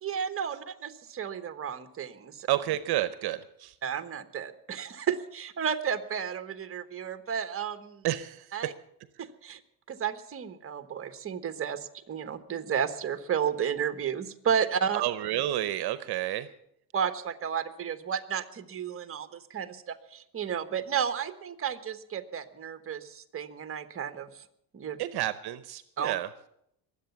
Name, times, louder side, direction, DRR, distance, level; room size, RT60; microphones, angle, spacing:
voice 1, 0.0-2.5 3.8-8.0 8.5-8.7 9.2-9.6 9.9-15.0 16.9-24.3 24.7-25.0 26.0-26.1, right 8 dB, 35° right, 10 dB, 1.3 m, -32 dB
voice 2, 2.5-3.8 8.0-8.7 14.9-16.5 25.0-26.3, right 14 dB, 70° right, 13 dB, 0.8 m, -30 dB
21.5 x 8.2 x 7.0 m, 0.76 s
cardioid pair, 110°, 40 cm